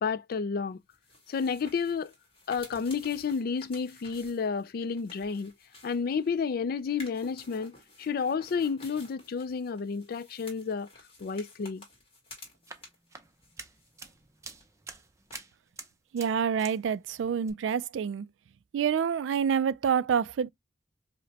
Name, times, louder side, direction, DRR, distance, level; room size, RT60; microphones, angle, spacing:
voice 1, 0.0-0.8 1.3-2.1 2.5-5.5 5.8-10.9 11.2-11.8, left 5 dB, 55° left, 0.4 m, -31 dB
sound 1, 0.9-6.4 6.9-13.1 13.4-14.3 14.5-14.6 15.3-15.4, left 2 dB, 30° left, 1.7 m, -52 dB
sound 2, 12.5-16.8 17.0-17.5, right 4 dB, 15° right, 0.5 m, -47 dB
voice 2, 16.1-18.3 18.7-20.5, right 7 dB, 85° right, 0.3 m, -27 dB
4.9 x 2.1 x 2.7 m
head